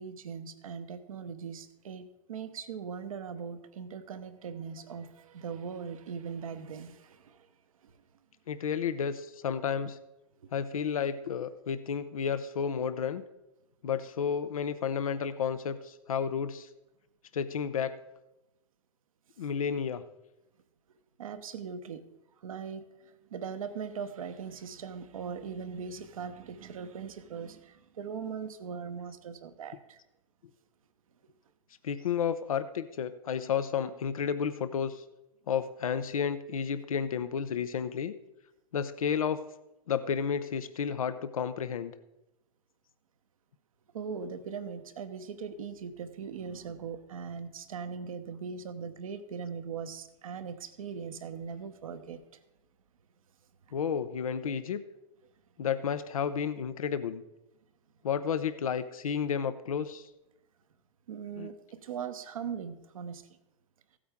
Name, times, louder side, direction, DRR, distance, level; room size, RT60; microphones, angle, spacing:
voice 1, 0.0-7.5 7.8-7.9 21.2-22.0 22.4-30.0 43.9-52.4 61.1-63.2, right 6 dB, 75° right, 10 dB, 1.0 m, -40 dB
voice 2, 8.5-10.0 10.5-13.2 13.8-16.7 17.3-18.0 19.4-20.0 31.8-35.0 35.5-38.1 38.7-39.4 39.9-41.9 53.7-54.8 55.6-57.2 58.0-60.1 61.4-61.5, left 7 dB, 85° left, 12 dB, 0.6 m, -31 dB
15.5 x 8.5 x 3.6 m, 0.95 s
hypercardioid pair, 100°, 18 cm